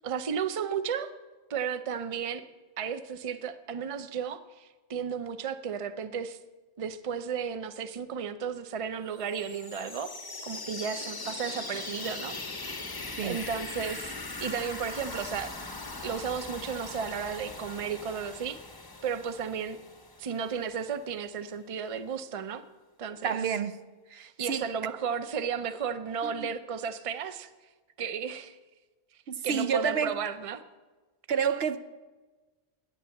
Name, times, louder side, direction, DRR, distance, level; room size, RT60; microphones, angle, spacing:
voice 1, 0.0-1.1 1.5-2.4 2.8-6.4 6.8-10.1 10.4-12.3 12.6-12.7 13.2-14.2 14.4-15.5 16.0-18.6 19.0-19.8 20.2-22.6 23.0-23.4 24.2-27.5 28.0-28.6 29.4-30.6, right 7 dB, 40° right, 0.6 m, -34 dB
sound 1, 9.1-20.8, left 3 dB, 25° left, 0.8 m, -40 dB
voice 2, 23.2-23.7 24.1-24.7 26.2-26.5 29.3-30.2 31.3-31.8, right 7 dB, 75° right, 0.9 m, -29 dB
11.5 x 9.4 x 7.1 m
omnidirectional pair, 1.1 m